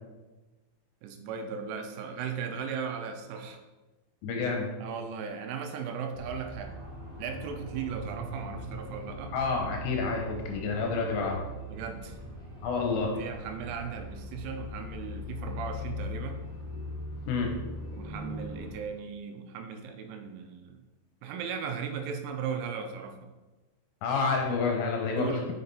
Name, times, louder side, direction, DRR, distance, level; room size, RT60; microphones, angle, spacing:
voice 1, 1.0-3.6 4.8-6.7 7.2-9.3 11.7-12.2 13.0-16.4 17.9-20.8 21.2-23.3 25.2-25.5, right 6 dB, 80° right, 6 dB, 3.0 m, -37 dB
voice 2, 4.2-4.7 9.3-11.4 12.6-13.2 17.3-17.6 24.0-25.4, left 4 dB, 80° left, 2 dB, 2.8 m, -29 dB
sound 1, 6.1-18.7, left 1 dB, 40° left, 1.4 m, -41 dB
6.7 x 5.8 x 4.0 m, 1.2 s
omnidirectional pair, 5.7 m